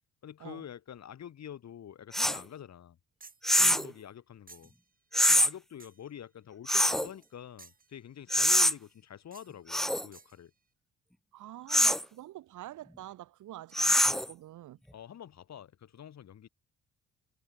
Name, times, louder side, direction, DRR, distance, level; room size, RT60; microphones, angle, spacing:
voice 1, 0.2-3.0 3.5-4.7 5.3-10.5 14.9-16.5, left 9 dB, 60° left, 5.5 m, -47 dB
sound 1, 2.1-2.4 3.4-3.9 5.1-5.5 6.7-7.1 8.3-8.7 9.7-10.1 11.7-12.0 13.7-14.3, equal, ahead, 0.6 m, -24 dB
sound 2, 3.2-3.5 4.5-4.8 5.8-6.1 6.7-7.3 7.6-7.9 8.5-8.9 9.3-9.5 10.1-10.4, right 4 dB, 30° right, 5.8 m, -55 dB
voice 2, 3.6-3.9 11.3-14.8, right 14 dB, 80° right, 2.6 m, -46 dB
cardioid pair, 90°, 30 cm